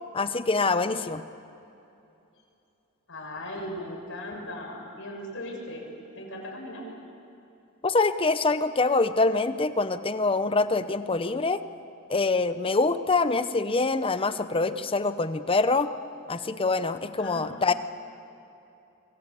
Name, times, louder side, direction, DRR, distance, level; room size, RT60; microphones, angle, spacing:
voice 1, 0.1-1.2 7.8-11.6 12.1-15.9 16.3-17.7, left 3 dB, 25° left, 11 dB, 0.8 m, -25 dB
voice 2, 3.1-5.8 6.1-6.8 17.2-17.8, left 1 dB, 65° left, 1 dB, 6.6 m, -38 dB
25.5 x 23.5 x 8.5 m, 2.8 s
head